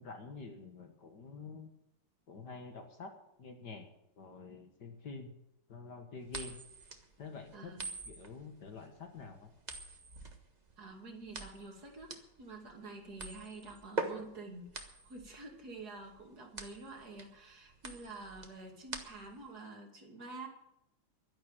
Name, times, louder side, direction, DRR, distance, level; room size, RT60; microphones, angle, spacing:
voice 1, 0.0-1.7 2.3-3.1 3.4-3.9 4.2-5.3 5.7-6.6 7.2-7.8 8.1-9.5, left 4 dB, 55° left, 5 dB, 2.1 m, -47 dB
sound 1, 6.3-19.5, right 2 dB, 25° right, 1.2 m, -44 dB
voice 2, 7.5-7.9 10.8-20.5, right 3 dB, 45° right, 1 dB, 3.0 m, -48 dB
12.0 x 11.0 x 8.9 m, 0.79 s
omnidirectional pair, 2.3 m